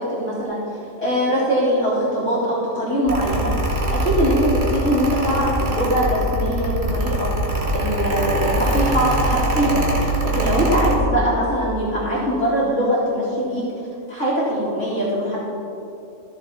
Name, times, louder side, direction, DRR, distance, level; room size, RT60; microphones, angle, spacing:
voice 1, 0.1-0.6 1.0-13.6 14.1-15.4, equal, 65° left, -12 dB, 2.7 m, -22 dB
Mechanical fan, 3.1-11.0, right 1 dB, 55° right, 1.6 m, -22 dB
15.0 x 6.7 x 4.1 m, 2.8 s
omnidirectional pair, 1.3 m